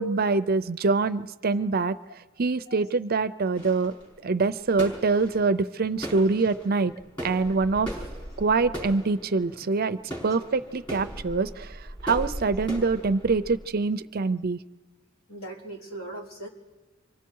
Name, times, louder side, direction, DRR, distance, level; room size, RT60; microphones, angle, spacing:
voice 1, 0.0-1.9 2.4-3.9 4.2-6.9 7.2-7.9 8.4-10.0 10.2-11.7 12.0-14.6, right 4 dB, 45° right, 12 dB, 0.6 m, -24 dB
sound 1, 3.5-13.7, equal, 25° left, 6.4 m, -39 dB
voice 2, 15.3-16.5, right 1 dB, 85° left, -3 dB, 3.9 m, -39 dB
28.0 x 24.5 x 4.7 m, 1.3 s
head